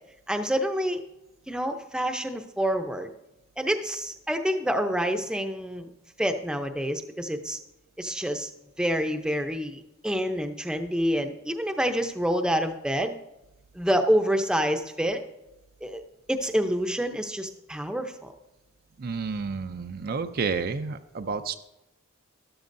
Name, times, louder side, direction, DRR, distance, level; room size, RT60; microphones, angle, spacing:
voice 1, 0.3-1.0 1.5-3.1 3.6-5.9 6.2-7.6 8.0-8.5 8.8-13.2 13.7-15.2 15.8-16.0 16.3-18.3, equal, 5° right, 6 dB, 0.6 m, -27 dB
voice 2, 19.0-21.5, right 5 dB, 45° right, 9 dB, 0.5 m, -30 dB
12.5 x 12.5 x 2.6 m, 0.93 s
head